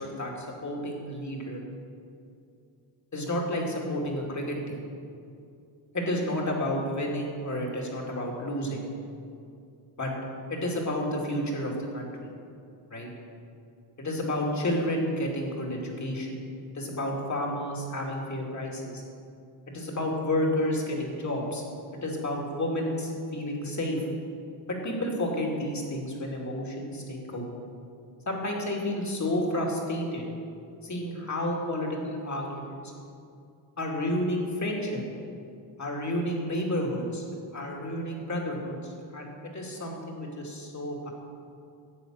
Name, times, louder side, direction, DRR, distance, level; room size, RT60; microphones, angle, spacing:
voice 1, 0.0-1.6 3.1-4.8 5.9-8.9 10.0-10.1 10.5-12.3 12.9-13.1 14.0-16.4 16.7-19.0 19.7-21.6 21.9-24.0 24.7-27.5 28.3-30.3 30.8-32.9 33.8-35.0 35.8-37.3 37.5-41.1, left 1 dB, 35° left, -1 dB, 2.5 m, -31 dB
11.0 x 7.7 x 6.4 m, 2.5 s
cardioid pair, 85°, 49 cm